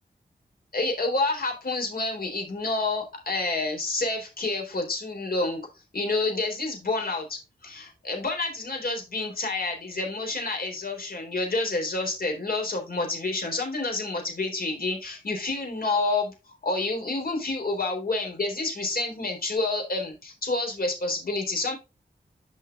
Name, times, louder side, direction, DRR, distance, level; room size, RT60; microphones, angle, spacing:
voice 1, 0.7-5.7 5.9-16.3 16.6-21.7, left 2 dB, 60° left, 2 dB, 3.8 m, -28 dB
10.5 x 5.8 x 2.4 m, 0.26 s
wide cardioid pair, 90°, 17 cm